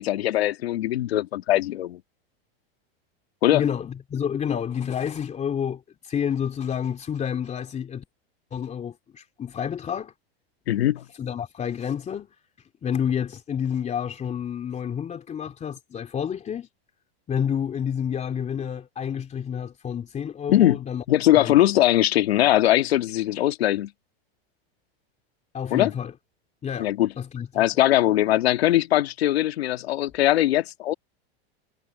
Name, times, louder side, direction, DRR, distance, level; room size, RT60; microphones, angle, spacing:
voice 1, 0.0-2.0 3.4-3.6 10.7-11.0 20.5-20.8 21.1-23.9 25.7-25.9 26.8-27.1 27.5-30.9, left 14 dB, 90° left, 1.7 m, -21 dB
voice 2, 3.5-8.1 8.5-10.1 11.2-12.3 12.8-16.7 17.3-21.0 21.4-21.6 25.5-26.1 26.6-26.9 27.2-27.6, left 8 dB, 25° left, 3.2 m, -29 dB
supercardioid pair, 135°, 30 cm